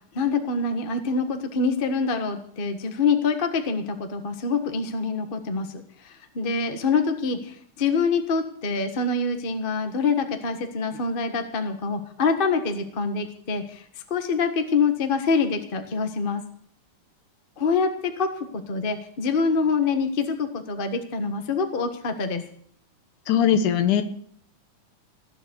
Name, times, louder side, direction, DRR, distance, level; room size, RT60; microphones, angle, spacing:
voice 1, 0.1-13.8 14.1-16.4 17.6-22.4, left 4 dB, 55° left, 7 dB, 0.5 m, -25 dB
voice 2, 23.3-24.0, left 9 dB, 80° left, 10 dB, 2.5 m, -20 dB
16.0 x 7.1 x 9.7 m, 0.64 s
omnidirectional pair, 3.5 m